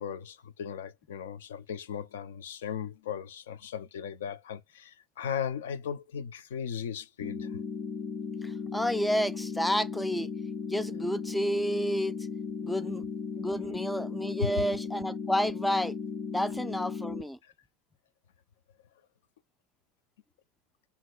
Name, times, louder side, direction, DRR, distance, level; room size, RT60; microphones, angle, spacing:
voice 1, 0.0-7.6 14.4-14.5 17.4-17.5, left 8 dB, 75° left, 0.4 m, -37 dB
sound 1, 7.2-17.2, left 5 dB, 30° left, 0.7 m, -36 dB
voice 2, 8.4-10.3 10.7-12.1 12.6-13.0 13.4-16.0 16.3-17.4, equal, 5° left, 0.3 m, -30 dB
2.8 x 2.1 x 3.7 m
hypercardioid pair, 85°, 0 cm